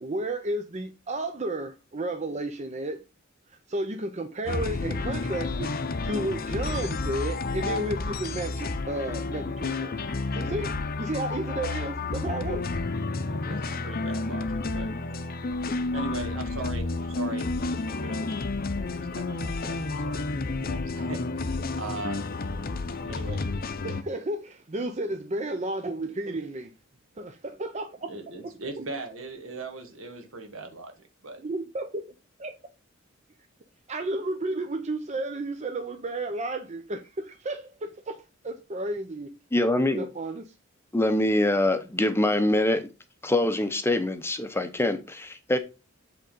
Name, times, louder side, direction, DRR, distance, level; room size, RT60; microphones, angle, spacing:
voice 1, 0.0-3.0 3.7-5.7 6.0-10.0 10.3-10.7 11.0-12.6 23.8-26.7 27.2-28.1 28.4-28.5 28.8-28.9 31.4-32.0 32.4-32.6 33.9-38.2 38.4-39.3 40.0-40.5, right 2 dB, 35° right, 0.7 m, -32 dB
sound 1, 4.5-24.0, left 3 dB, 45° left, 0.7 m, -31 dB
voice 2, 13.3-14.9 15.9-18.3 18.9-20.3 20.7-22.2 23.1-23.5 28.1-30.9 31.2-31.4, right 3 dB, 75° right, 1.8 m, -39 dB
voice 3, 39.5-40.0 40.9-42.9 43.2-45.6, left 1 dB, 10° left, 0.7 m, -24 dB
8.1 x 3.7 x 5.3 m
head